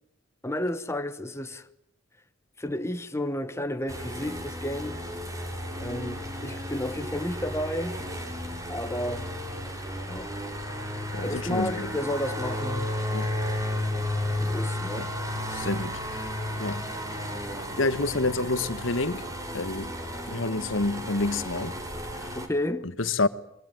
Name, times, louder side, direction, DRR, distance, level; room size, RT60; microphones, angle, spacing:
voice 1, 0.4-1.7 2.6-5.0 5.8-8.1 8.7-9.3 10.1-10.3 11.2-13.0 14.4-15.1 22.3-22.9, left 1 dB, 15° left, 1.1 m, -32 dB
sound 1, 3.9-22.5, left 1 dB, 15° right, 4.3 m, -33 dB
voice 2, 11.1-11.9 13.1-13.3 15.0-15.1 15.5-16.2 16.6-16.9 17.8-19.3 19.5-19.9 20.3-21.8 22.1-22.3 23.0-23.3, left 3 dB, 70° left, 1.4 m, -28 dB
24.0 x 23.5 x 9.4 m
head